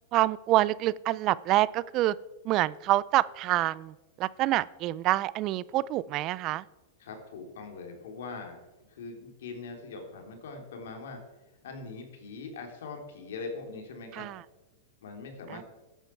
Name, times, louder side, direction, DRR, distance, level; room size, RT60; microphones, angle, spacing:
voice 1, 0.1-2.2 2.4-6.6 14.1-14.4 15.5-15.6, right 15 dB, 35° right, 20 dB, 0.4 m, -27 dB
voice 2, 7.0-8.6 8.9-11.2 11.6-14.3 15.0-15.6, left 4 dB, 75° left, 3 dB, 3.4 m, -41 dB
14.0 x 10.0 x 4.6 m, 1.1 s
supercardioid pair, 145°, 0 cm